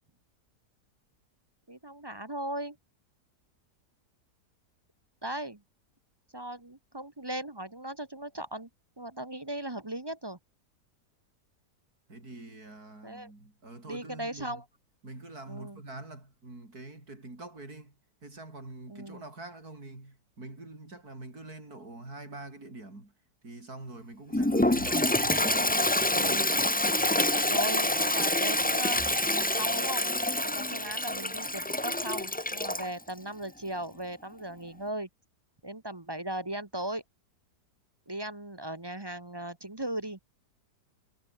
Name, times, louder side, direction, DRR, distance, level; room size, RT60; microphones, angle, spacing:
voice 1, 1.7-2.8 5.2-5.6 6.3-8.7 9.0-10.4 13.0-13.3 13.9-14.6 15.5-15.8 18.9-19.2 25.3-25.7 26.1-26.5 27.5-29.0 29.6-30.1 30.4-35.1 35.6-37.0 38.1-40.2, right 1 dB, 15° right, 1.1 m, -37 dB
voice 2, 12.1-14.6 15.0-18.0 18.2-23.1 23.4-25.7, right 2 dB, 65° right, 6.6 m, -45 dB
Toilet flush, 24.3-32.9, left 1 dB, 10° left, 0.6 m, -27 dB
omnidirectional pair, 1.7 m